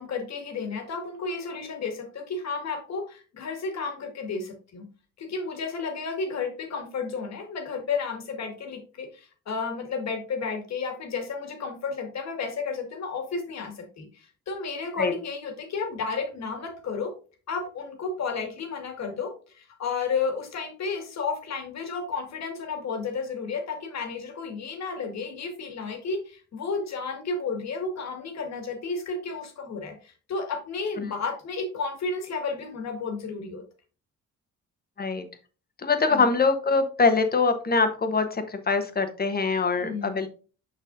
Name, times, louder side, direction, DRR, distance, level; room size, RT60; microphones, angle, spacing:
voice 1, 0.0-4.9 5.2-17.1 17.5-33.6 36.1-36.3 39.8-40.2, left 4 dB, 60° left, 5 dB, 2.0 m, -32 dB
voice 2, 35.8-40.3, left 4 dB, 30° left, 8 dB, 1.2 m, -23 dB
6.8 x 5.8 x 2.6 m, 0.36 s
cardioid pair, 90°, 30 cm